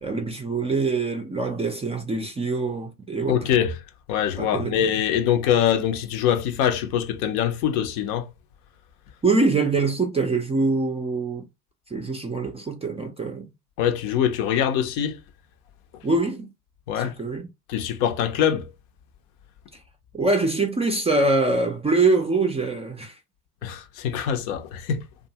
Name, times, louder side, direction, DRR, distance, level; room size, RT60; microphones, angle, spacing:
voice 1, 0.0-3.4 4.4-4.9 9.2-11.5 11.9-13.5 16.0-16.5 17.0-17.5 20.1-23.1, right 3 dB, 15° right, 0.4 m, -24 dB
voice 2, 3.3-3.8 4.1-8.3 13.8-15.2 16.9-17.1 17.7-18.7 23.6-25.0, left 9 dB, 65° left, 0.7 m, -23 dB
2.6 x 2.3 x 2.7 m
hypercardioid pair, 75°, 48 cm